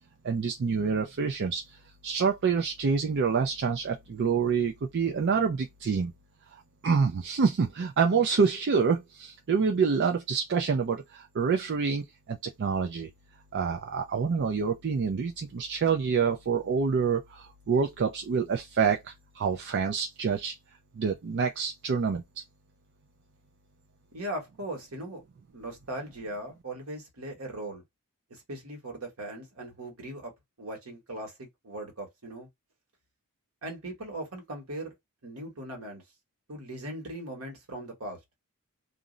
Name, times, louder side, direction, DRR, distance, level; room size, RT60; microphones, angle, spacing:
voice 1, 0.2-1.8 2.0-6.1 6.5-13.1 13.5-20.5 21.0-22.2, right 5 dB, 50° right, 0.4 m, -27 dB
voice 2, 24.1-25.2 25.5-27.8 28.3-30.3 30.6-32.5 33.6-35.0 35.2-36.0 36.5-38.2, right 1 dB, 70° right, 1.2 m, -39 dB
2.5 x 2.0 x 3.7 m
head